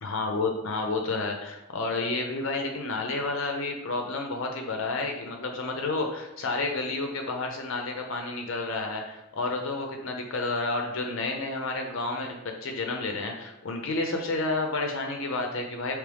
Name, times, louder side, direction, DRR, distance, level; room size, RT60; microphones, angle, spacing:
voice 1, 0.0-16.0, left 3 dB, 60° left, 2 dB, 0.6 m, -30 dB
4.9 x 3.2 x 3.4 m, 0.92 s
head